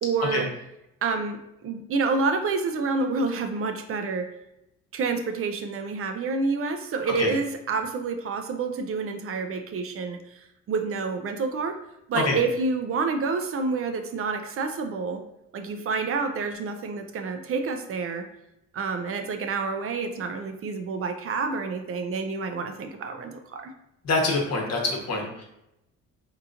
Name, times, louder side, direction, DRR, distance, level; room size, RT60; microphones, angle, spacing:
voice 1, 0.0-0.5 1.0-4.3 4.9-10.4 10.7-11.8 12.1-15.2 15.5-18.2 18.7-23.7, right 4 dB, 50° right, 6 dB, 0.4 m, -28 dB
voice 2, 24.0-25.4, left 3 dB, 60° left, 0 dB, 1.0 m, -25 dB
3.7 x 2.9 x 2.4 m, 0.85 s
cardioid pair, 90°, 30 cm